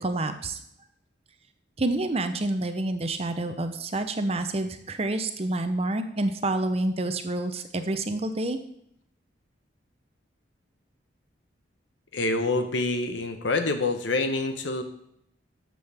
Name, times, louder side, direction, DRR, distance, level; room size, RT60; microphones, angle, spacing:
voice 1, 0.0-0.6 1.8-8.6, right 2 dB, 35° right, 8 dB, 0.7 m, -28 dB
voice 2, 12.1-14.8, left 3 dB, 85° left, 7 dB, 1.1 m, -26 dB
12.0 x 7.6 x 3.5 m, 0.73 s
head